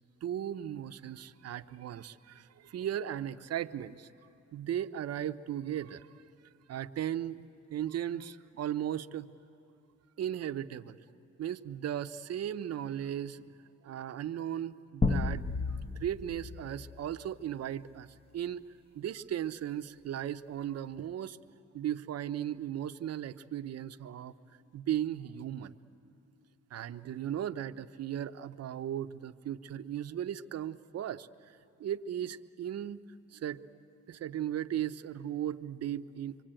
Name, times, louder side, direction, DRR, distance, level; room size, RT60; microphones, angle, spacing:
voice 1, 0.2-4.1 4.5-6.1 6.7-7.4 7.7-9.3 10.2-11.0 11.4-13.5 13.8-15.4 15.7-18.1 18.3-18.7 18.9-21.4 21.7-24.3 24.7-25.7 26.7-33.0 33.3-33.6 34.1-36.4, right 10 dB, 55° right, 10 dB, 0.8 m, -36 dB
sound 1, 15.0-17.8, left 3 dB, 20° left, 0.9 m, -33 dB
24.5 x 24.0 x 9.0 m, 2.6 s
cardioid pair, 90°, 30 cm